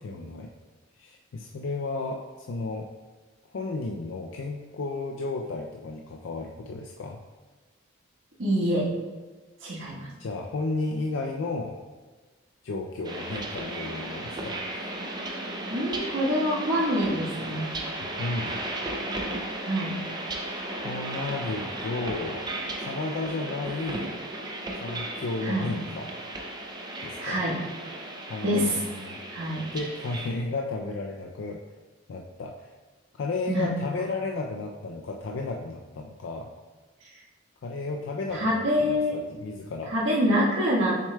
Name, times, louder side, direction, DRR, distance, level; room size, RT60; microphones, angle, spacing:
voice 1, 0.0-0.5 1.0-2.9 3.5-7.2 10.2-11.8 12.6-14.6 18.0-18.6 19.4-19.6 20.8-22.4 22.8-24.1 24.7-26.1 27.0-27.5 28.2-29.2 29.7-31.6 32.1-32.7 33.2-36.5 37.6-39.9, left 3 dB, 70° left, 1 dB, 0.4 m, -33 dB
voice 2, 8.4-8.9 9.6-10.1 15.7-17.7 19.6-19.9 25.4-25.7 27.2-27.6 28.4-28.8 29.3-29.6 33.5-33.7 38.3-39.2 39.9-41.0, equal, 75° right, -7 dB, 1.5 m, -25 dB
sound 1, 13.0-30.3, right 1 dB, 20° right, 0.5 m, -35 dB
6.6 x 6.2 x 2.2 m, 1.3 s
head